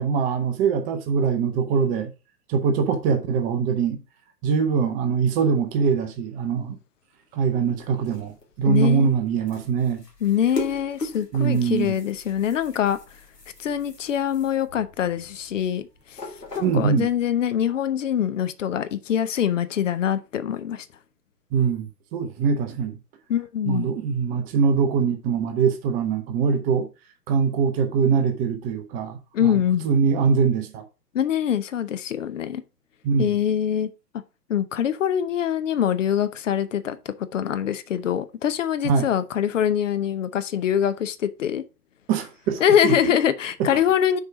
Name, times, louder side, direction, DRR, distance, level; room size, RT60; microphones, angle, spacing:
voice 1, 0.0-2.1 2.5-4.0 4.4-6.8 7.3-10.0 11.3-12.0 16.6-17.1 21.5-23.0 23.6-26.9 27.3-30.8 33.0-33.4 38.8-39.1 42.1-43.1 43.6-43.7, right 6 dB, 15° right, 0.7 m, -23 dB
sound 1, 7.7-17.2, left 1 dB, 85° left, 2.4 m, -40 dB
voice 2, 8.7-9.1 10.2-13.0 13.6-16.2 16.6-20.9 23.3-23.9 29.3-29.9 31.1-32.6 33.2-33.9 34.5-37.0 37.3-41.6 42.6-44.2, left 9 dB, 50° left, 0.8 m, -24 dB
6.5 x 4.7 x 4.8 m
figure-of-eight pair, 115°, 47 cm